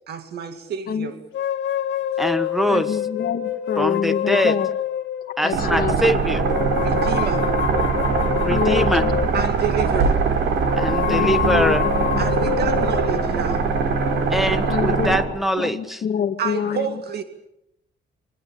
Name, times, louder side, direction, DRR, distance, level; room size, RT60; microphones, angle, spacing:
voice 1, 0.1-1.2 6.7-7.5 9.3-10.3 12.2-13.7 16.4-17.2, right 7 dB, 60° right, 7 dB, 2.2 m, -29 dB
sound 1, 1.3-5.5 6.3-9.7 10.5-14.9, left 11 dB, 85° left, 2.1 m, -27 dB
voice 2, 2.2-3.0 3.8-4.6 5.4-6.4 8.4-9.1 10.7-11.9 14.3-16.0, equal, ahead, 10 dB, 1.4 m, -23 dB
voice 3, 2.7-4.7 5.4-6.2 8.5-9.1 9.7-9.8 11.0-12.4 14.7-15.1 15.6-16.9, left 8 dB, 55° left, 3 dB, 2.0 m, -26 dB
sound 2, 5.5-15.2, right 5 dB, 80° right, 5.0 m, -22 dB
24.0 x 20.0 x 8.5 m, 0.83 s
cardioid pair, 165°, 19 cm